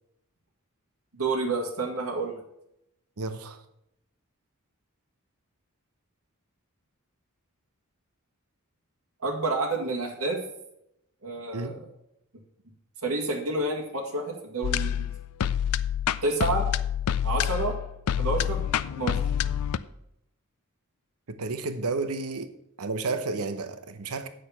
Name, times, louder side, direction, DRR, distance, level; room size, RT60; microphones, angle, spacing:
voice 1, 1.1-2.4 9.2-10.4 11.2-11.8 13.0-15.1 16.2-16.7 17.2-17.7 18.2-18.7 19.0-19.2, right 2 dB, 75° right, -1 dB, 2.0 m, -29 dB
voice 2, 3.2-3.6 11.5-11.8 21.3-22.5 22.8-24.3, right 3 dB, 90° right, 10 dB, 0.9 m, -31 dB
sound 1, 14.6-19.8, left 9 dB, 90° left, 0.4 m, -27 dB
8.7 x 6.6 x 5.7 m, 0.79 s
head